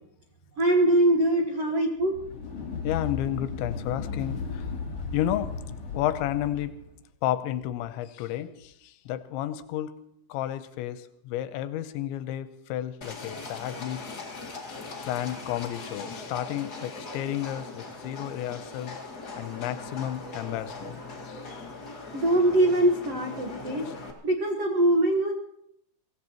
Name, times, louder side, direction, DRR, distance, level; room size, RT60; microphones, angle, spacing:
voice 1, 0.6-2.1 22.1-23.9 24.2-25.3, right 1 dB, 85° right, 1 dB, 1.3 m, -22 dB
sound 1, 2.0-6.8, left 5 dB, 45° left, 2.4 m, -35 dB
voice 2, 2.8-4.7 5.1-5.5 5.9-6.8 7.2-9.9 10.3-14.0 15.0-19.0 19.4-21.6 23.9-24.0, left 12 dB, 85° left, 11 dB, 3.1 m, -32 dB
Livestock farm animals working animals, 13.0-24.1, left 3 dB, 60° left, 1.0 m, -40 dB
24.0 x 16.5 x 3.0 m, 0.77 s
omnidirectional pair, 5.2 m